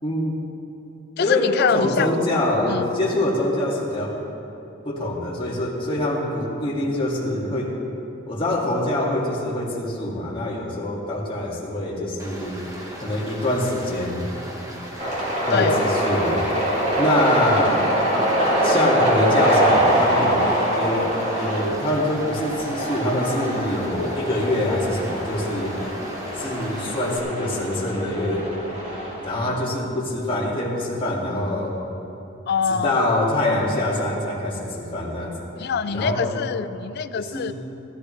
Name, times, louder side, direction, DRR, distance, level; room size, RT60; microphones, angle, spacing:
voice 1, 0.0-0.4 1.2-4.1 4.8-7.7 8.3-12.6 13.0-14.3 15.5-16.4 17.0-17.8 18.6-20.4 20.8-21.1 21.4-25.7 26.4-28.5 29.2-31.7 32.7-35.3 35.9-36.4 37.1-37.5, left 1 dB, 25° left, -5 dB, 2.0 m, -24 dB
voice 2, 1.2-2.1 2.7-2.9 15.5-15.8 32.5-33.0 35.6-37.5, left 6 dB, 55° left, 12 dB, 0.4 m, -24 dB
Stream, 12.2-27.2, equal, 15° right, 1.3 m, -38 dB
sound 1, 15.0-29.4, right 1 dB, 35° right, 2.9 m, -23 dB
15.0 x 14.0 x 3.2 m, 3.0 s
head